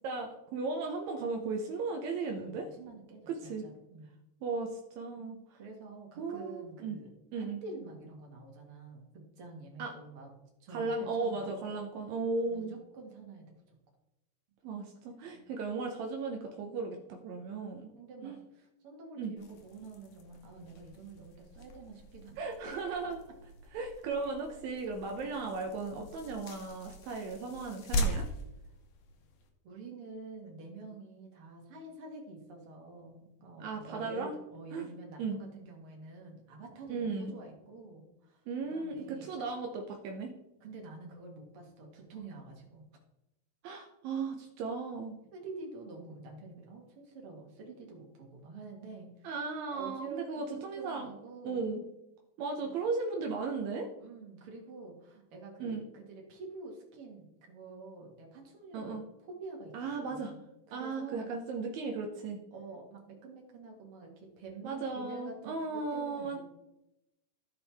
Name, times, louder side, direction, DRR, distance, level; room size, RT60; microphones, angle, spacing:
voice 1, 0.0-2.7 3.3-3.7 4.4-5.4 6.2-7.0 7.3-7.6 9.8-9.9 10.7-12.7 14.6-17.0 17.2-17.9 18.2-18.4 19.2-19.3 22.4-23.2 23.7-28.2 33.6-34.3 34.7-34.9 35.2-35.4 36.9-37.3 38.5-40.3 43.6-45.2 49.2-51.1 51.4-51.8 52.4-53.9 55.6-55.8 58.7-59.0 59.7-60.3 60.7-62.4 64.6-66.4, right 4 dB, 80° right, 2 dB, 1.6 m, -36 dB
voice 2, 2.3-3.2 3.6-4.1 5.2-7.1 7.3-10.3 10.6-11.7 12.5-13.5 15.3-15.5 17.5-23.2 24.3-24.4 25.2-25.3 29.6-39.3 40.6-42.8 45.3-49.3 49.7-50.5 50.7-51.8 52.6-52.7 54.0-59.7 60.0-61.3 62.5-66.4, right 3 dB, 45° right, 0 dB, 2.1 m, -48 dB
sound 1, 19.4-29.5, equal, 65° left, 2.3 m, -41 dB
14.5 x 5.4 x 3.4 m, 0.92 s
omnidirectional pair, 4.2 m